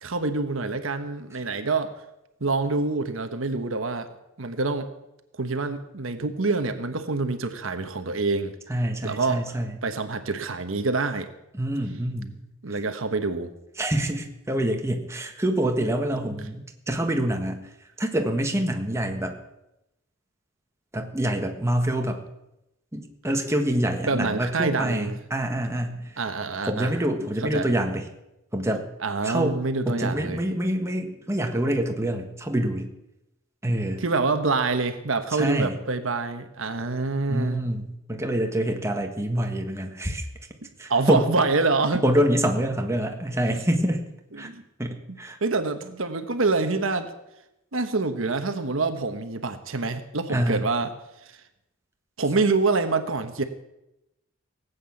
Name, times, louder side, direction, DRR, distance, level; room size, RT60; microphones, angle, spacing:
voice 1, 0.0-1.9 2.4-4.1 4.4-4.9 5.4-8.5 9.0-9.4 9.8-11.3 12.6-13.5 16.2-16.4 24.0-25.2 26.2-26.9 27.5-27.7 29.0-30.4 34.0-37.6 40.9-42.0 44.3-44.6 45.4-47.1 47.7-50.9 51.2-51.4 52.2-53.4, right 3 dB, 75° right, 8 dB, 1.2 m, -26 dB
voice 2, 8.7-9.7 11.5-12.5 13.8-17.6 18.0-19.4 20.9-22.2 22.9-26.2 26.6-28.1 28.5-28.9 29.2-29.6 29.9-32.9 33.6-34.0 35.3-35.7 37.3-40.3 40.8-41.2 42.0-44.0 44.4-44.5 44.8-45.4 50.3-50.6, right 1 dB, 15° right, 3 dB, 1.5 m, -26 dB
18.0 x 8.5 x 7.2 m, 0.89 s
head